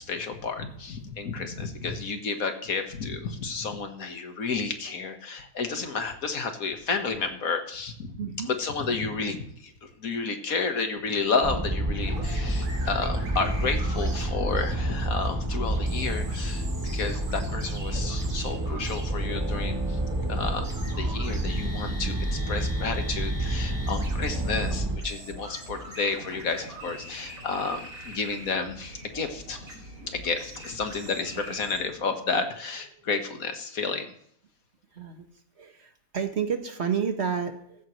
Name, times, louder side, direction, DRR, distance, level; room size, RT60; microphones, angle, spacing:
voice 1, 0.0-8.1 8.5-20.0 20.3-20.7 20.9-29.8 30.1-34.1, left 4 dB, 75° left, 6 dB, 1.9 m, -31 dB
voice 2, 8.2-8.5 15.8-15.9 31.3-31.5 33.0-33.1 34.9-35.3 35.6-37.9, right 7 dB, 50° right, 7 dB, 1.5 m, -31 dB
sound 1, 11.4-25.0, right 1 dB, 15° right, 1.2 m, -29 dB
sound 2, 12.0-31.8, right 2 dB, 70° right, 2.8 m, -43 dB
sound 3, 21.7-32.0, left 2 dB, 40° left, 4.5 m, -51 dB
15.0 x 14.0 x 3.2 m, 0.65 s
omnidirectional pair, 1.5 m